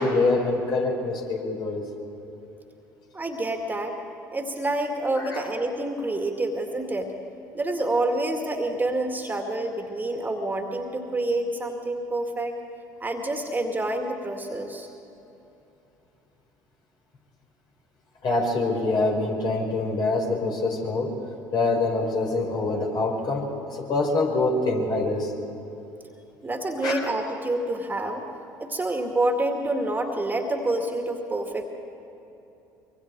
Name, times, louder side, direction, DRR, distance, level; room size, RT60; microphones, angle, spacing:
voice 1, 0.0-1.8 5.2-5.4 18.2-21.2 21.5-25.3 26.8-27.1, left 2 dB, 50° left, 0 dB, 4.9 m, -25 dB
voice 2, 3.1-4.0 4.3-7.1 7.5-12.5 13.0-14.9 26.4-28.2 28.6-31.7, right 2 dB, 20° right, 3 dB, 2.3 m, -27 dB
24.5 x 23.5 x 4.7 m, 2.9 s
hypercardioid pair, 60°, 10 cm